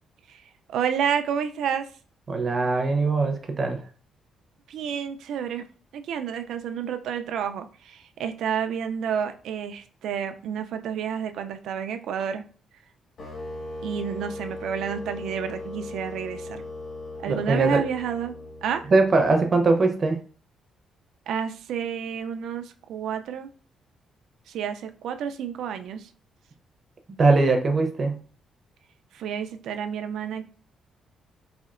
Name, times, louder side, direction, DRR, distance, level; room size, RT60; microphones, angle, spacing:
voice 1, 0.7-1.9 4.7-5.7 5.9-12.4 13.8-16.6 17.2-18.4 18.6-18.9 21.3-23.5 24.5-26.1 29.1-30.4, right 8 dB, 75° right, 8 dB, 0.4 m, -30 dB
voice 2, 2.3-3.8 17.3-17.8 18.9-20.2 27.1-28.2, right 3 dB, 30° right, 5 dB, 0.6 m, -21 dB
sound 1, 13.2-19.3, left 2 dB, 45° left, 1.5 m, -38 dB
4.2 x 2.7 x 2.4 m, 0.42 s
cardioid pair, 155°, 0 cm